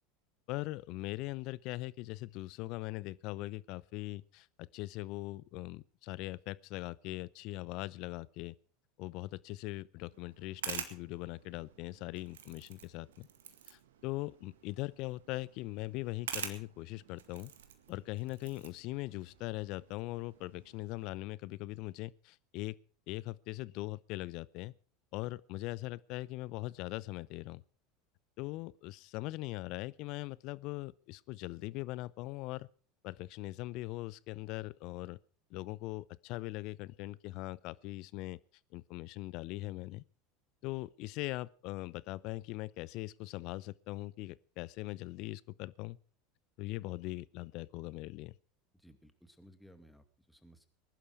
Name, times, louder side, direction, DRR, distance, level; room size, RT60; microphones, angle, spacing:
voice 1, 0.5-8.6 9.0-13.3 13.7-17.5 17.9-22.8 23.1-24.7 25.1-27.6 28.4-32.7 33.0-35.2 35.5-38.4 38.7-40.0 40.6-46.0 46.6-48.3, left 20 dB, 55° left, 0.6 m, -41 dB
sound 1, 10.1-21.1, right 9 dB, 75° right, 1.9 m, -48 dB
voice 2, 48.7-50.7, equal, 5° left, 2.4 m, -59 dB
20.0 x 11.5 x 4.9 m
hypercardioid pair, 80°, 0 cm